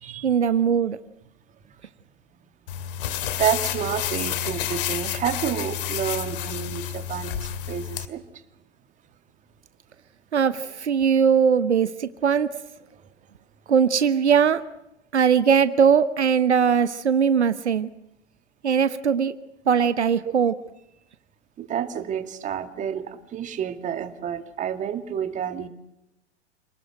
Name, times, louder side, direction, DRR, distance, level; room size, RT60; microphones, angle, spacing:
voice 1, 0.2-1.0 10.3-12.5 13.7-14.6 15.1-17.9 18.6-19.3 19.7-20.5, right 7 dB, 70° right, 14 dB, 1.1 m, -20 dB
sound 1, 2.7-8.1, left 11 dB, 50° left, 2.2 m, -30 dB
voice 2, 3.4-8.2 21.6-25.7, right 9 dB, 20° right, 9 dB, 2.0 m, -29 dB
29.0 x 19.5 x 7.9 m, 0.89 s
figure-of-eight pair, 105°, 35 cm